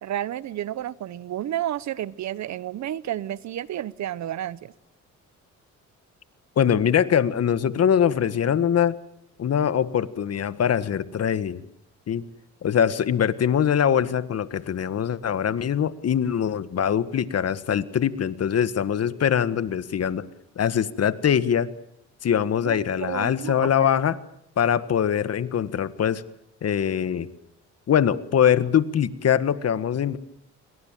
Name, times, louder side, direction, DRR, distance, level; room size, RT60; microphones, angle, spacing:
voice 1, 0.0-4.7 22.6-23.9, right 12 dB, 65° right, 19 dB, 1.0 m, -31 dB
voice 2, 6.6-9.0 9.4-11.6 12.1-12.2 12.6-20.2 20.5-21.7 22.2-24.2 24.6-26.2 26.6-27.3 27.9-30.2, left 8 dB, 55° left, 14 dB, 1.6 m, -23 dB
28.5 x 23.0 x 7.6 m, 0.76 s
cardioid pair, 90°, 30 cm